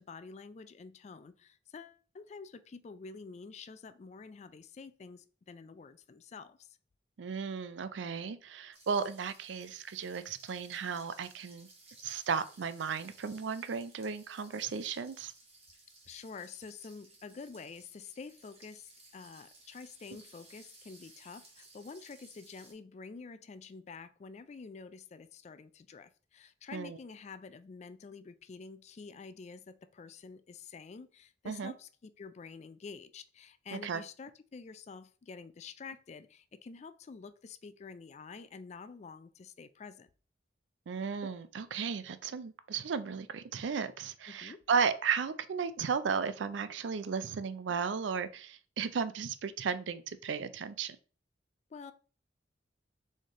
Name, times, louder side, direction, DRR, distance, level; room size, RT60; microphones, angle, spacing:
voice 1, 0.0-6.8 16.1-40.1 44.3-44.6 51.7-51.9, left 4 dB, 35° left, 0.3 m, -48 dB
voice 2, 7.2-11.7 12.0-15.3 26.7-27.0 31.5-31.7 33.7-34.0 40.9-51.0, right 6 dB, 85° right, 0.4 m, -35 dB
sound 1, 8.7-22.7, right 2 dB, 35° right, 1.4 m, -59 dB
4.2 x 3.3 x 3.6 m
head